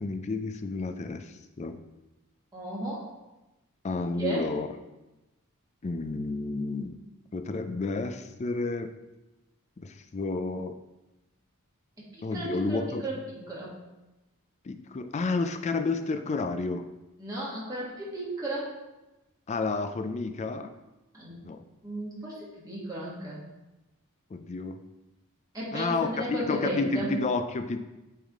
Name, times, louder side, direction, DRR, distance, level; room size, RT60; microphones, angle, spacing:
voice 1, 0.0-1.8 3.8-4.7 5.8-7.0 7.3-8.9 9.8-10.8 12.2-13.0 14.6-16.9 19.5-20.7 21.4-21.6 24.3-24.8 25.7-27.8, left 3 dB, 30° left, 8 dB, 0.4 m, -31 dB
voice 2, 2.5-3.0 4.2-4.5 12.1-13.7 17.2-18.7 21.1-21.4 21.8-23.4 25.5-27.1, right 1 dB, 15° right, -6 dB, 1.7 m, -34 dB
8.6 x 3.5 x 3.6 m, 1.0 s
head